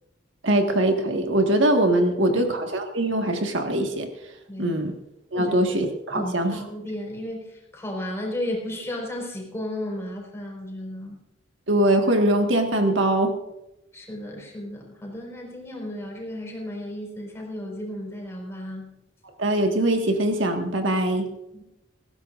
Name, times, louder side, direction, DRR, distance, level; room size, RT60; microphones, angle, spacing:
voice 1, 0.4-4.1 4.6-4.9 5.3-6.6 11.7-13.3 19.4-21.3, right 1 dB, 70° right, 4 dB, 1.7 m, -22 dB
voice 2, 4.5-4.8 5.3-5.8 6.1-11.2 13.9-18.9 21.5-21.6, left 1 dB, 15° left, -1 dB, 4.7 m, -34 dB
19.5 x 16.0 x 2.5 m, 0.92 s
head